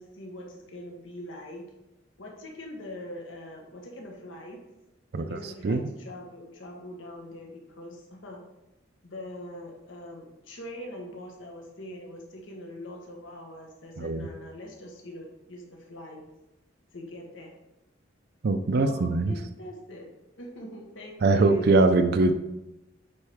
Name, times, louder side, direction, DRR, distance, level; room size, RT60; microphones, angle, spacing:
voice 1, 0.0-1.7 2.2-4.6 5.1-8.4 9.0-16.2 16.9-17.6 18.7-20.1 20.4-21.8, left 1 dB, 85° left, 0 dB, 1.3 m, -42 dB
voice 2, 5.1-5.8 14.0-14.3 18.4-19.3 21.2-22.3, right 3 dB, 55° right, 7 dB, 0.4 m, -22 dB
9.1 x 4.3 x 3.5 m, 0.95 s
head